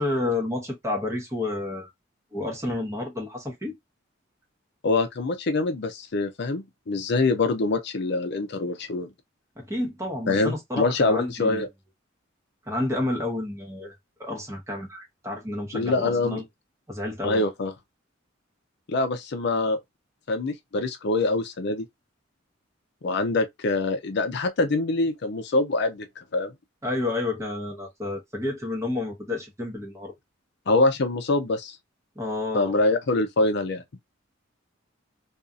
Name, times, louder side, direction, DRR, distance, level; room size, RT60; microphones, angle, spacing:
voice 1, 0.0-1.9 2.3-3.8 9.6-11.6 12.7-13.9 14.2-16.4 16.9-17.4 26.8-30.1 32.2-32.7, left 2 dB, 15° right, 0.9 m, -30 dB
voice 2, 4.8-9.1 10.3-11.7 15.7-16.4 17.2-17.7 18.9-19.8 20.3-21.9 23.0-26.5 30.7-31.8 32.5-33.8, left 2 dB, 60° left, 0.5 m, -24 dB
2.6 x 2.4 x 2.3 m
head